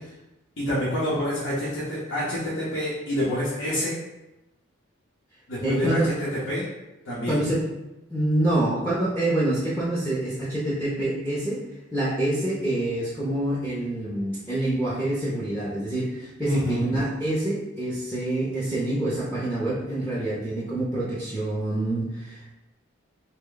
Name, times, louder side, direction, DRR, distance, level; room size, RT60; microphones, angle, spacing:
voice 1, 0.6-4.0 5.5-6.7 7.1-7.4 16.4-16.9, equal, 70° left, -8 dB, 0.8 m, -27 dB
voice 2, 5.6-6.1 7.3-7.6 8.1-11.6 11.9-22.5, right 1 dB, 10° left, -8 dB, 0.6 m, -26 dB
3.3 x 2.2 x 3.8 m, 0.97 s
head